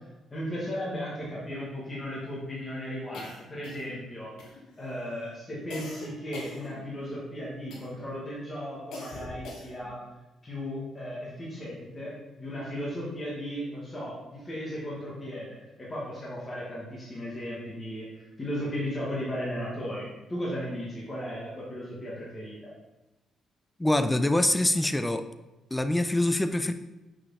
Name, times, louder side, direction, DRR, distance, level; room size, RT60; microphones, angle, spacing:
voice 1, 0.3-4.3 4.8-10.0 10.4-18.1 18.4-22.6, equal, 25° left, -7 dB, 2.5 m, -36 dB
sound 1, 3.1-4.1 4.4-4.9 5.7-7.2 7.7-8.1 8.9-9.9, left 2 dB, 80° left, 1.5 m, -43 dB
voice 2, 23.8-25.3 25.7-26.7, left 1 dB, 10° left, 10 dB, 0.5 m, -24 dB
6.8 x 5.5 x 4.2 m, 1.0 s
cardioid pair, 90°, 0 cm